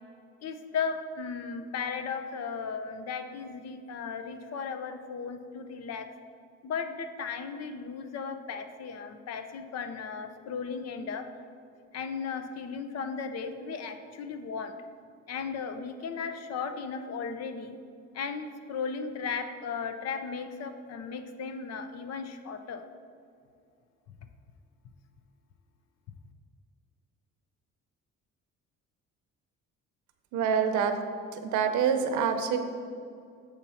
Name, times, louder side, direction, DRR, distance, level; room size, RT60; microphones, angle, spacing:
voice 1, 0.4-6.1 6.6-11.3 11.9-14.7 15.3-17.8 18.1-22.8, left 5 dB, 60° left, 8 dB, 0.7 m, -36 dB
voice 2, 30.3-30.9 31.3-32.6, right 7 dB, 85° right, 7 dB, 0.7 m, -26 dB
7.0 x 4.4 x 5.6 m, 2.4 s
cardioid pair, 115°, 29 cm